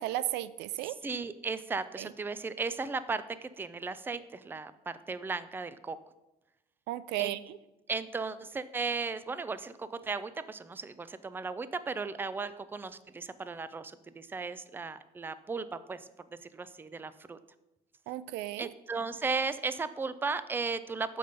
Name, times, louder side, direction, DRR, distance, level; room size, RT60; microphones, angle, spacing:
voice 1, 0.0-1.0 2.0-2.1 6.9-7.6 18.1-18.7, right 14 dB, 85° right, 17 dB, 0.4 m, -34 dB
voice 2, 1.0-6.0 7.2-7.4 7.9-16.1 16.4-17.4 18.6-21.2, right 4 dB, 10° right, 14 dB, 0.4 m, -36 dB
6.9 x 5.1 x 5.2 m, 0.99 s
cardioid pair, 110°, 17 cm